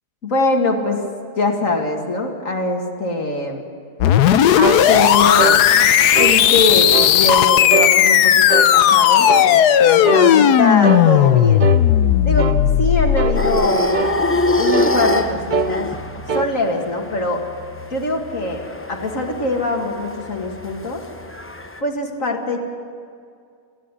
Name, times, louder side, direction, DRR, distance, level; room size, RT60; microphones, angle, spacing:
voice 1, 0.2-1.0 1.4-3.6 4.5-5.7 6.2-11.7 12.2-15.9 16.3-17.4 17.9-21.0 21.8-22.6, left 2 dB, 50° left, 2 dB, 2.6 m, -23 dB
sound 1, 4.0-13.7, left 10 dB, 80° left, 1.3 m, -14 dB
sound 2, 4.6-4.8 5.4-5.6 6.2-6.4 6.9-7.2 7.7-7.9 8.5-8.7 9.3-9.5 10.1-10.3 10.8-11.1 11.6-11.8 12.4-12.6 13.2-13.4 13.9-14.2 14.7-15.0 15.5-15.7 16.3-16.5, right 5 dB, 45° right, 0.6 m, -22 dB
sound 3, 13.3-21.8, left 1 dB, 15° left, 0.5 m, -24 dB
27.5 x 11.0 x 9.9 m, 2.2 s
omnidirectional pair, 1.8 m